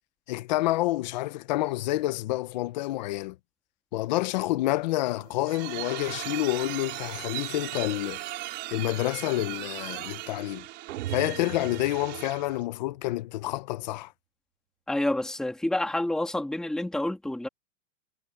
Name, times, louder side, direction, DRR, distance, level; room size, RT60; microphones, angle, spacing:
voice 1, 0.3-3.4 3.9-8.2 8.7-10.6 11.1-14.1, left 17 dB, 35° left, 0.6 m, -28 dB
sound 1, 5.1-12.6, right 17 dB, 25° right, 3.9 m, -38 dB
sound 2, 10.9-13.0, right 14 dB, 65° right, 2.4 m, -38 dB
voice 2, 14.9-17.5, left 1 dB, ahead, 2.1 m, -28 dB
supercardioid pair, 170°, 41 cm